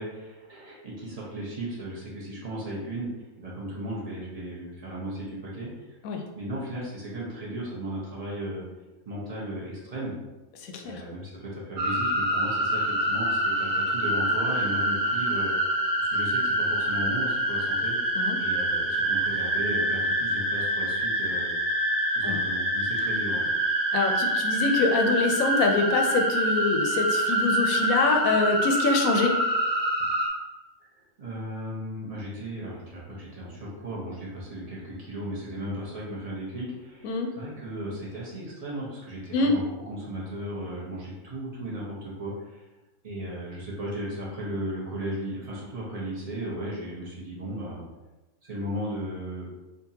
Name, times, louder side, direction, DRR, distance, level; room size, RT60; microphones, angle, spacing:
voice 1, 0.0-3.1 3.4-5.9 6.3-8.6 9.0-10.1 10.8-18.0 18.4-21.5 22.1-23.5 31.2-42.6 43.0-47.8 48.4-49.4, right 1 dB, 30° right, -6 dB, 0.9 m, -36 dB
voice 2, 10.6-11.0 18.2-18.4 22.2-22.4 23.9-29.3 37.0-37.3 39.3-39.5, left 3 dB, 75° left, 3 dB, 1.0 m, -25 dB
sound 1, 11.8-30.3, right 1 dB, 70° right, 1.4 m, -26 dB
3.6 x 2.7 x 2.8 m, 1.1 s
omnidirectional pair, 1.5 m